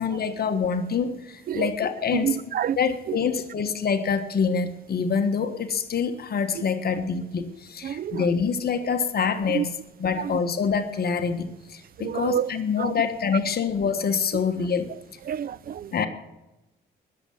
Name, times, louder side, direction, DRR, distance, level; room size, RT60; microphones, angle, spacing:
voice 1, 0.0-2.4 2.8-14.9 15.9-16.1, left 6 dB, 50° left, 1.4 m, -26 dB
voice 2, 2.2-2.8 3.1-3.2 7.8-8.3 9.5-9.7 10.2-10.4 12.0-12.5 12.8-12.9 15.3-15.9, right 9 dB, 50° right, 0.5 m, -28 dB
20.0 x 7.8 x 7.1 m
cardioid pair, 90°, 20 cm